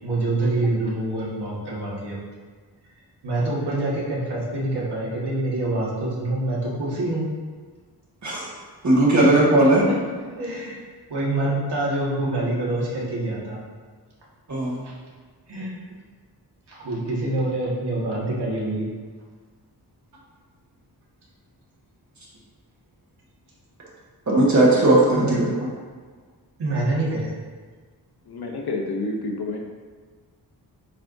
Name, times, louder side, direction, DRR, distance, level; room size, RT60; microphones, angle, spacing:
voice 1, 0.0-2.2 3.2-7.3 9.1-9.4 9.9-10.0 10.2-10.8 11.1-13.6 14.8-15.0 15.5-15.7 16.7-18.9 25.1-25.5 26.6-27.3, right 2 dB, 75° right, -5 dB, 1.8 m, -26 dB
voice 2, 8.8-9.8 14.5-14.8 24.3-25.5, right 1 dB, 45° right, -5 dB, 1.4 m, -17 dB
voice 3, 28.3-29.6, left 2 dB, 70° left, 2 dB, 0.8 m, -29 dB
9.8 x 4.6 x 2.7 m, 1.5 s
wide cardioid pair, 180°, 41 cm